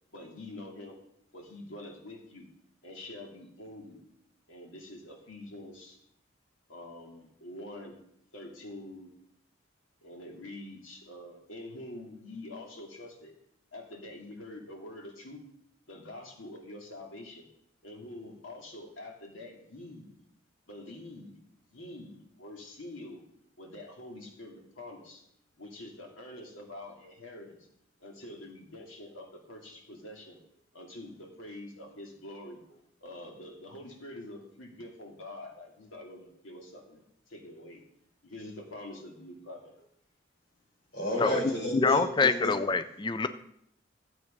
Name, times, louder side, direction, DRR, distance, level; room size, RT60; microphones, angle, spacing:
voice 1, 0.1-1.0 1.3-2.5 2.8-4.0 4.5-6.0 6.7-8.0 8.3-9.1 10.0-13.3 13.7-15.4 15.9-17.4 17.8-20.1 20.7-21.4 21.7-23.2 23.6-25.2 25.6-27.6 28.0-30.4 30.7-32.6 33.0-37.0 37.3-37.8 38.2-39.7, left 1 dB, 90° left, 1 dB, 2.5 m, -45 dB
voice 2, 40.9-42.5, left 1 dB, 55° left, -3 dB, 4.8 m, -31 dB
voice 3, 41.7-43.3, left 4 dB, 25° left, 11 dB, 0.4 m, -26 dB
12.5 x 7.8 x 5.2 m, 0.73 s
head